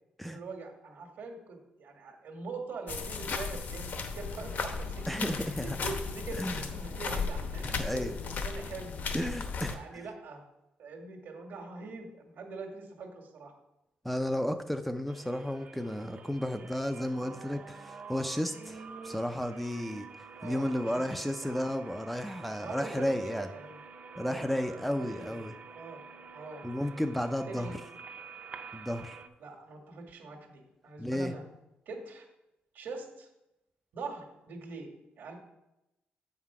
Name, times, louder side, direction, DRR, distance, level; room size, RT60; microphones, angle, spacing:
voice 1, 0.2-5.3 5.6-9.3 9.7-10.4 10.8-13.5 20.4-21.6 22.6-23.8 24.2-25.5 25.7-26.0 26.3-26.6 27.5-27.8 29.4-31.4 31.8-32.3 32.7-33.3 33.9-34.9 35.2-35.3, right 3 dB, 70° right, 3 dB, 1.6 m, -43 dB
sound 1, 2.9-9.7, left 5 dB, 55° left, 0.8 m, -36 dB
voice 2, 5.1-5.8 6.4-6.7 7.6-8.1 9.1-9.8 14.0-20.1 20.4-23.5 24.1-25.6 26.6-27.8 28.7-29.2 31.0-31.3, equal, ahead, 6 dB, 0.3 m, -33 dB
sound 2, 15.1-29.3, right 5 dB, 40° right, 0.6 m, -48 dB
7.9 x 5.7 x 4.7 m, 0.93 s
cardioid pair, 140°, 4 cm